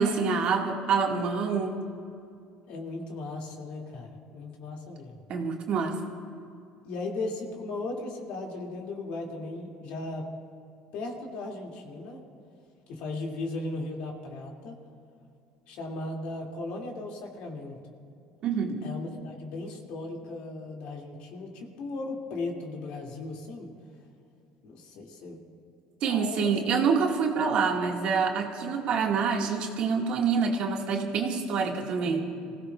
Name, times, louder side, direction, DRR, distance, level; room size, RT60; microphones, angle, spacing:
voice 1, 0.0-1.8 5.3-6.0 18.4-18.8 26.0-32.3, right 5 dB, 55° right, 1 dB, 1.9 m, -26 dB
voice 2, 2.7-5.2 6.8-10.3 10.9-12.2 12.9-14.7 15.7-17.8 18.8-23.7 24.6-25.4 26.0-26.6 27.3-27.5 32.0-32.5, left 2 dB, 70° left, 0 dB, 2.5 m, -37 dB
27.5 x 16.0 x 2.4 m, 2.4 s
cardioid pair, 115°, 2 cm